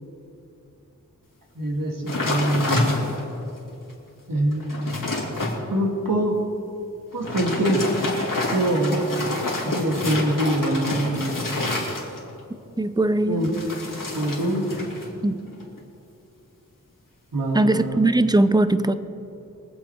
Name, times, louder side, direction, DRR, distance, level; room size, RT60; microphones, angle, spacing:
voice 1, 1.6-2.9 4.3-4.6 5.7-6.4 7.1-7.9 8.5-9.0 9.6-11.3 13.3-13.6 14.1-14.6 17.3-18.1, right 1 dB, 85° right, 0 dB, 2.0 m, -24 dB
sound 1, 2.1-3.4 3.9-4.0 4.4-5.6 7.1-12.4 13.4-15.1 15.4-15.8, left 2 dB, 70° left, 2.7 m, -28 dB
voice 2, 12.8-13.5 15.2-15.4 17.5-18.9, right 2 dB, 10° right, 12 dB, 0.6 m, -20 dB
23.0 x 7.7 x 4.5 m, 2.7 s
wide cardioid pair, 55°, 33 cm